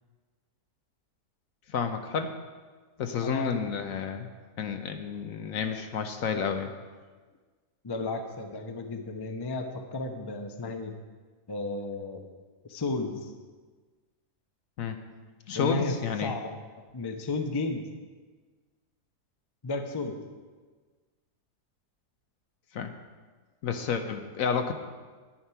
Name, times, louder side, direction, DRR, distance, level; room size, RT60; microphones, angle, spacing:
voice 1, 1.7-2.3 3.0-4.3 4.6-6.7 14.8-15.0 15.5-16.3 22.7-22.9 23.6-24.7, left 6 dB, 65° left, 7 dB, 1.1 m, -30 dB
voice 2, 3.2-3.6 7.8-10.9 11.5-12.2 12.6-13.3 15.5-16.0 16.2-16.5 16.9-17.9 19.6-20.2, left 3 dB, 25° left, 5 dB, 0.6 m, -33 dB
10.0 x 9.5 x 5.7 m, 1.4 s
omnidirectional pair, 1.7 m